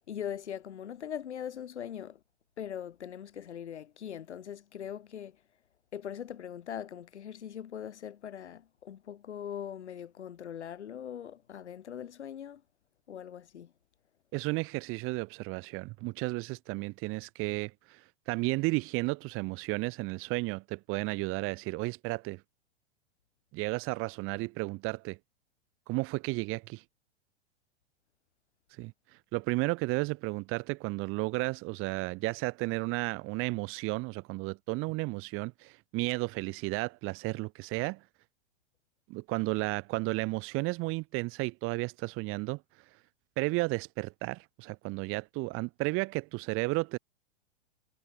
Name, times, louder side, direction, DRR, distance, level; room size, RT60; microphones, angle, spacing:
voice 1, 0.1-2.2 2.6-5.4 5.9-12.6 13.1-13.7, left 9 dB, 85° left, 4.3 m, -41 dB
voice 2, 14.3-22.4 23.5-25.2 25.9-26.8 28.8-28.9 29.3-38.0 39.1-42.6 43.4-47.0, right 24 dB, 40° right, 2.3 m, -33 dB
hypercardioid pair, 125°, 33 cm